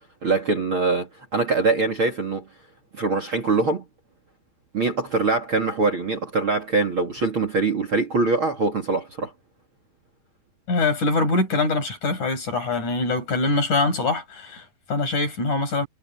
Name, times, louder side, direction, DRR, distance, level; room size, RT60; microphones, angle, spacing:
voice 1, 0.2-2.5 2.9-3.8 4.7-9.3, right 3 dB, 35° right, 3.0 m, -23 dB
voice 2, 10.7-15.9, left 3 dB, 50° left, 7.9 m, -23 dB
omnidirectional pair, 4.4 m